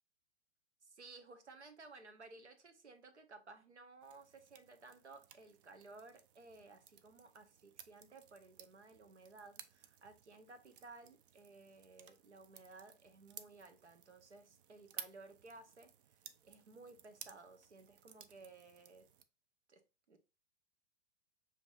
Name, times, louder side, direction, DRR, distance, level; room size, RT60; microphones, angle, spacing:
voice 1, 0.8-16.2 16.4-19.1 19.7-19.8 20.1-20.2, right 3 dB, 85° right, 1.0 m, -57 dB
sound 1, 4.0-19.2, right 9 dB, 50° right, 0.6 m, -57 dB
6.8 x 2.9 x 2.4 m
figure-of-eight pair, 105°, 33 cm